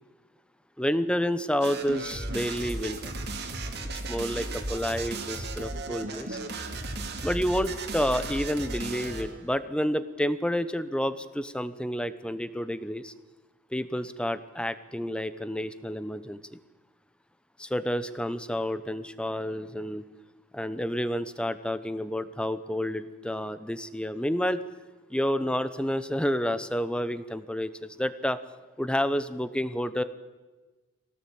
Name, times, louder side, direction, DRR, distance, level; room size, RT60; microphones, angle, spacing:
voice 1, 0.8-3.1 3.9-6.4 7.2-13.1 13.7-16.6 17.6-20.0 20.5-24.6 25.1-28.4 28.8-30.0, equal, 5° left, 13 dB, 0.9 m, -29 dB
sound 1, 1.6-9.4, right 2 dB, 55° right, 2.5 m, -35 dB
23.5 x 18.0 x 8.6 m, 1.2 s
head